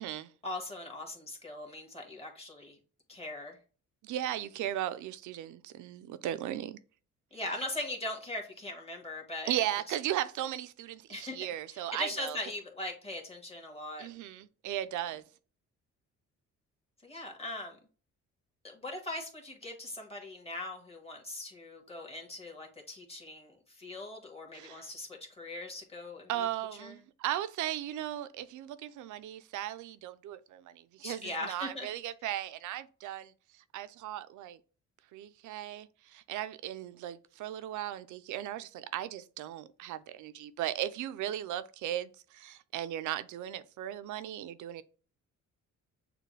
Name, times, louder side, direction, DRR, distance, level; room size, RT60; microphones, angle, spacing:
voice 1, 0.4-2.8 3.1-3.6 7.3-9.9 11.1-11.4 11.7-14.1 17.0-17.8 18.6-26.5 26.8-27.0 31.0-31.9, left 2 dB, 20° left, 1.6 m, -40 dB
voice 2, 4.0-6.8 9.5-12.4 14.0-15.2 24.5-24.9 26.3-33.3 33.7-34.6 35.1-44.8, right 12 dB, 80° right, 0.5 m, -37 dB
6.6 x 2.3 x 3.2 m
cardioid pair, 90°, 30 cm